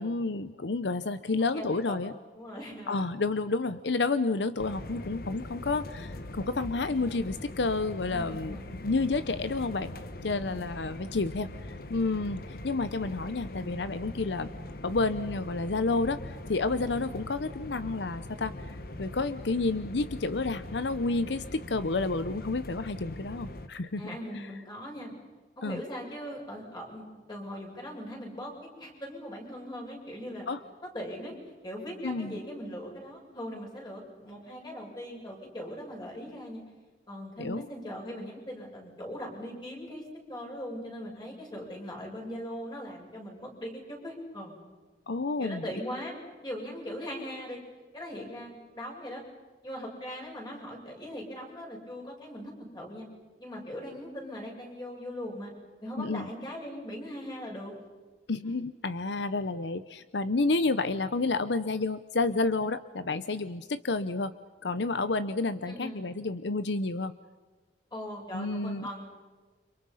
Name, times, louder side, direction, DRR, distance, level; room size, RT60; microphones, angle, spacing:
voice 1, 0.0-2.1 2.9-9.9 10.2-14.5 14.8-24.0 24.3-24.5 25.6-25.8 30.5-30.6 32.0-32.3 37.4-37.7 45.1-45.6 56.0-56.3 58.3-64.3 64.6-67.1 68.3-68.9, left 3 dB, 80° left, 14 dB, 0.8 m, -30 dB
voice 2, 1.5-3.0 8.1-8.6 10.4-10.6 24.0-25.1 25.6-28.5 28.8-30.5 30.8-31.3 31.6-36.6 37.1-40.0 40.3-44.5 45.4-46.2 46.4-47.6 47.9-49.2 49.6-53.1 53.4-55.5 55.8-57.7 58.4-58.5 65.7-66.0 67.9-69.0, equal, 25° left, -1 dB, 7.3 m, -40 dB
sound 1, 4.6-23.7, left 1 dB, 55° left, 1.4 m, -41 dB
30.0 x 26.5 x 5.7 m, 1.3 s
head